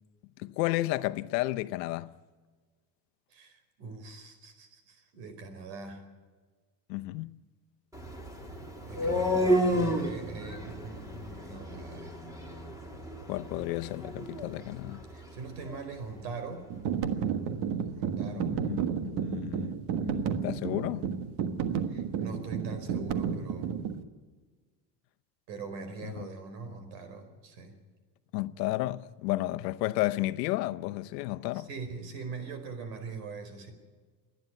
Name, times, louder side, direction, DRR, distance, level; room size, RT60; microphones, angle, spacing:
voice 1, 0.4-2.1 6.9-7.3 13.3-15.0 18.2-19.7 20.0-21.0 26.0-26.3 28.3-31.7, left 18 dB, 85° left, 0.9 m, -32 dB
voice 2, 3.3-6.1 8.9-12.1 15.1-16.7 17.9-18.7 20.7-21.0 21.9-23.7 25.5-27.7 31.5-33.7, right 4 dB, 80° right, 4.6 m, -42 dB
sound 1, 7.9-15.9, equal, 5° right, 2.8 m, -32 dB
sound 2, 16.7-24.0, right 7 dB, 55° right, 1.5 m, -32 dB
27.5 x 10.5 x 9.4 m
supercardioid pair, 130°, 48 cm